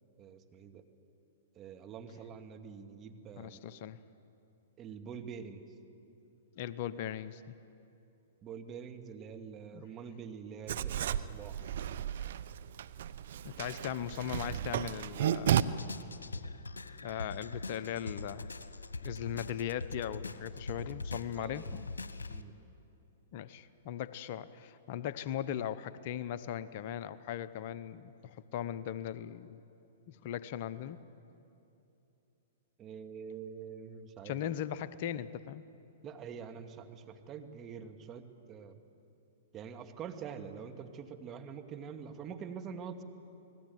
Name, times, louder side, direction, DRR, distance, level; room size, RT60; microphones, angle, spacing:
voice 1, 0.2-0.8 1.6-3.6 4.8-5.6 8.4-11.6 21.3-21.7 22.3-22.5 32.8-34.4 36.0-38.8 39.5-43.0, right 6 dB, 25° right, 5 dB, 2.1 m, -45 dB
voice 2, 3.4-4.0 6.6-7.5 9.7-9.8 13.4-15.7 17.0-18.5 19.0-22.2 23.3-29.6 30.1-31.0 34.2-35.6, left 10 dB, 50° left, 14 dB, 0.9 m, -39 dB
Writing, 10.7-15.6, right 11 dB, 65° right, 0.8 m, -33 dB
sound 1, 15.5-22.4, left 3 dB, 90° left, 1.2 m, -42 dB
29.0 x 19.5 x 9.5 m, 2.9 s
hypercardioid pair, 120°, 0 cm